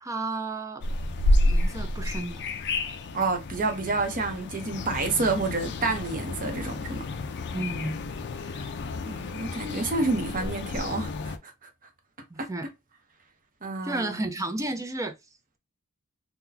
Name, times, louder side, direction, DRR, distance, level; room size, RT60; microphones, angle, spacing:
voice 1, 0.0-0.8 1.4-2.5 7.5-8.0 12.3-12.7 13.8-15.2, right 2 dB, 15° right, 0.5 m, -32 dB
sound 1, 0.8-11.4, left 1 dB, 50° left, 0.4 m, -30 dB
voice 2, 3.1-7.0 8.4-8.7 9.1-11.5 12.4-12.5 13.6-14.3, right 3 dB, 40° right, 0.8 m, -29 dB
3.9 x 2.2 x 2.7 m
head